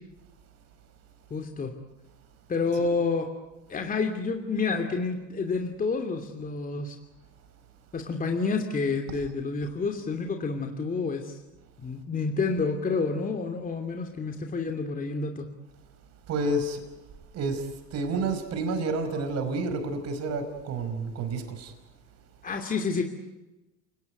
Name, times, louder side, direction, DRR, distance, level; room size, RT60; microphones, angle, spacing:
voice 1, 1.3-1.7 2.5-3.3 3.7-7.0 7.9-11.4 11.8-15.5 22.4-23.0, left 4 dB, 25° left, 4 dB, 2.8 m, -29 dB
voice 2, 16.3-16.8 17.3-21.7, right 2 dB, 55° right, 8 dB, 5.1 m, -30 dB
29.0 x 19.0 x 9.4 m, 1.0 s
supercardioid pair, 100°, 31 cm